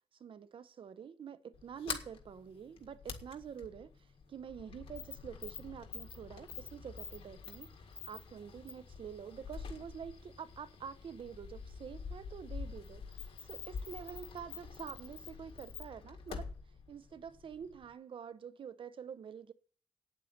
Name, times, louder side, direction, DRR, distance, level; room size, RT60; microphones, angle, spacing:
voice 1, 0.2-3.9 4.3-16.5 16.9-19.5, right 7 dB, 65° right, 0.8 m, -47 dB
Sliding door, 1.5-17.9, left 5 dB, 80° left, 1.8 m, -47 dB
9.3 x 8.2 x 8.0 m
wide cardioid pair, 100°, 9 cm